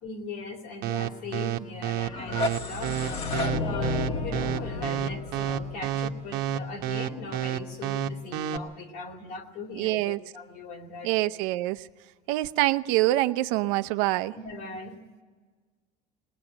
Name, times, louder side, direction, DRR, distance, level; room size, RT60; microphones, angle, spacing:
voice 1, 0.0-11.3 14.4-15.0, left 3 dB, 60° left, 5 dB, 2.7 m, -40 dB
sound 1, 0.8-8.6, right 12 dB, 75° right, 1.1 m, -29 dB
sound 2, 2.0-6.9, left 3 dB, 40° left, 1.6 m, -32 dB
voice 2, 9.7-10.2 11.0-11.9 12.3-14.3, right 17 dB, 90° right, 11 dB, 0.7 m, -25 dB
20.0 x 20.0 x 8.9 m, 1.5 s
cardioid pair, 150°, 16 cm